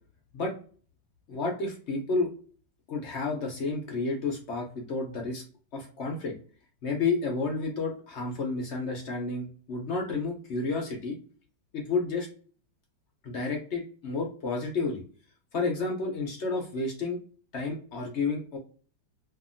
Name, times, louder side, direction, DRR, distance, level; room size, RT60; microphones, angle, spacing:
voice 1, 1.3-2.3 2.9-5.4 5.7-6.3 6.8-11.2 11.7-12.3 13.2-15.0 15.5-17.2 17.5-18.6, left 3 dB, 60° left, 0 dB, 0.7 m, -31 dB
2.8 x 2.6 x 2.5 m, 0.41 s
omnidirectional pair, 2.0 m